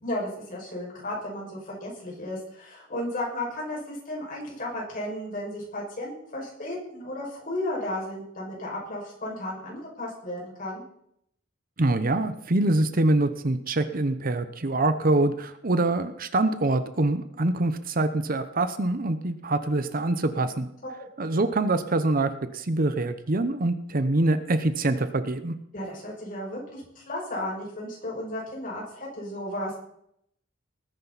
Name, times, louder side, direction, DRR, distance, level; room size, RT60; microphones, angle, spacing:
voice 1, 0.0-10.8 20.8-21.1 25.7-29.8, left 1 dB, 45° left, -3 dB, 5.8 m, -34 dB
voice 2, 11.8-20.7 21.2-25.5, right 2 dB, 45° right, 10 dB, 0.9 m, -25 dB
19.5 x 10.5 x 4.1 m, 0.74 s
head